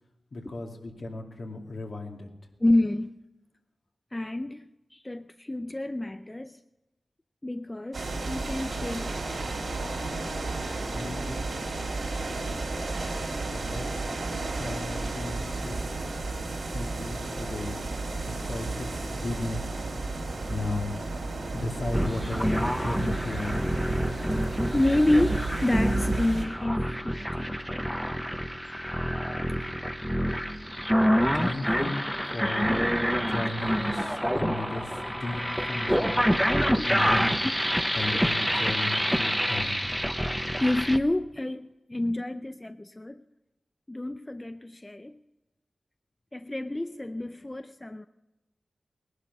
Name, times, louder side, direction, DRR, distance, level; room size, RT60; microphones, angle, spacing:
voice 1, 0.3-2.3 10.9-11.5 13.3-14.1 14.6-15.9 16.7-17.8 18.2-19.6 20.5-21.0 21.5-23.7 31.3-32.0 32.3-32.8 33.1-36.3 36.9-37.5 37.9-39.9, left 2 dB, 70° left, 2.4 m, -35 dB
voice 2, 2.6-3.1 4.1-4.6 4.9-6.6 7.4-9.2 24.3-27.5 27.7-27.9 35.9-36.1 36.7-36.9 37.4-37.5 37.8-38.2 40.6-43.2 43.9-45.2 46.3-48.1, left 1 dB, 25° left, 0.5 m, -29 dB
sound 1, 7.9-26.4, right 3 dB, 85° right, 3.5 m, -33 dB
sound 2, 21.9-41.0, equal, ahead, 0.9 m, -27 dB
19.0 x 11.5 x 5.5 m
cardioid pair, 50°, 0 cm